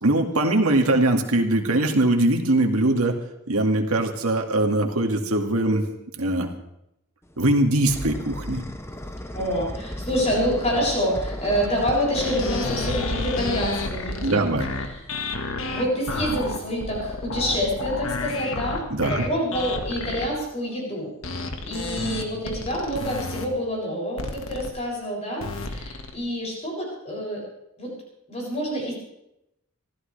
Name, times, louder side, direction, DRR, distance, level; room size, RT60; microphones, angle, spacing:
voice 1, 0.0-3.2 3.5-5.9 6.2-6.5 7.4-8.7 14.2-14.7 18.9-19.2, right 1 dB, 90° right, 3 dB, 2.2 m, -21 dB
sound 1, 7.3-15.2, equal, 10° left, 0.9 m, -34 dB
voice 2, 9.3-14.4 14.8-14.9 15.7-18.8 19.1-21.1 21.6-27.4 27.8-27.9 28.3-28.9, equal, 30° left, -3 dB, 7.1 m, -27 dB
sound 2, 12.1-20.3 21.2-23.4 24.2-24.7 25.4-26.1, left 3 dB, 75° left, 1.8 m, -31 dB
25.0 x 14.5 x 3.4 m, 0.83 s
head